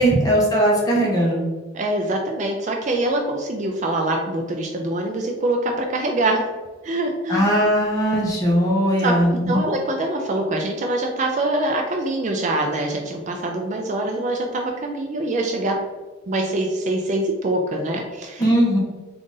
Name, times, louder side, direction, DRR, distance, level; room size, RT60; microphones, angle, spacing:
voice 1, 0.0-1.4 7.3-9.6 18.4-18.8, equal, 15° left, -4 dB, 0.9 m, -19 dB
voice 2, 1.7-6.5 6.8-7.4 9.0-15.7 16.3-18.5, right 1 dB, 35° right, 2 dB, 0.3 m, -24 dB
3.8 x 2.5 x 3.8 m, 1.3 s
head